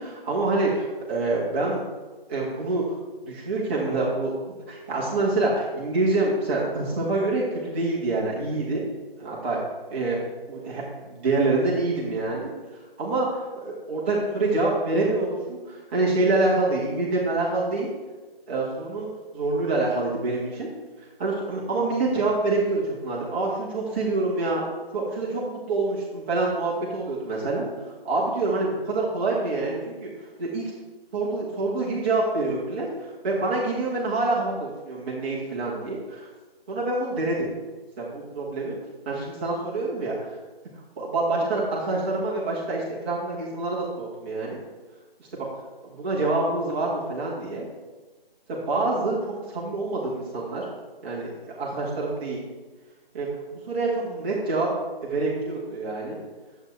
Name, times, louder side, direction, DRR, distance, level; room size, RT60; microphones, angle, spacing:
voice 1, 0.0-1.8 2.3-3.0 3.3-8.8 9.2-9.6 9.9-10.2 10.5-12.5 13.0-17.9 18.5-20.7 21.2-24.6 24.9-27.7 28.0-30.7 31.1-36.3 36.7-37.5 38.0-38.8 39.0-40.4 41.0-44.6 45.2-45.5 45.8-47.6 48.5-50.7 51.0-52.4 53.1-54.7 55.0-56.2, right 2 dB, 10° right, -6 dB, 1.3 m, -26 dB
11.0 x 8.0 x 3.3 m, 1.2 s
figure-of-eight pair, 155°, 30 cm